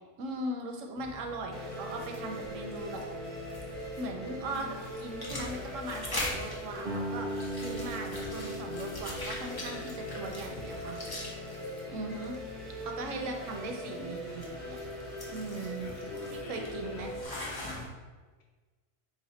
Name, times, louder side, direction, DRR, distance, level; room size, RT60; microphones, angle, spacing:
voice 1, 0.2-3.0 4.0-11.3 11.9-12.4 12.8-14.8 15.3-15.9 16.3-17.1, right 2 dB, 85° right, 3 dB, 0.9 m, -39 dB
sound 1, 1.0-17.9, left 2 dB, 25° left, 0.5 m, -43 dB
sound 2, 1.5-17.3, left 1 dB, ahead, 0.8 m, -41 dB
Guitar, 6.8-12.2, right 1 dB, 60° right, 0.4 m, -41 dB
voice 2, 10.0-10.6 11.9-12.0 15.8-17.1, left 2 dB, 65° left, -1 dB, 0.8 m, -48 dB
4.1 x 2.4 x 4.0 m, 1.3 s
omnidirectional pair, 1.3 m